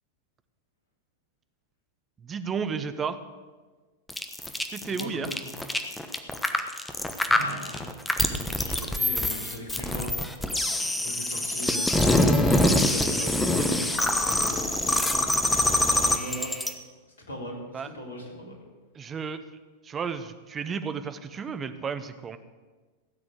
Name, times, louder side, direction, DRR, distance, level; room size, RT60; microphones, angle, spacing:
voice 1, 2.2-3.2 4.7-5.3 17.7-17.9 18.9-19.4 19.8-22.4, right 6 dB, 20° right, 10 dB, 1.0 m, -32 dB
sound 1, 4.1-16.7, left 1 dB, 5° left, 1.1 m, -25 dB
voice 2, 4.9-5.4 6.0-6.1 7.3-7.9 8.6-13.9 14.2-15.2 15.7-16.5 17.3-18.5, equal, 70° left, 0 dB, 3.4 m, -40 dB
16.0 x 7.6 x 8.0 m, 1.4 s
figure-of-eight pair, 90°, 0 cm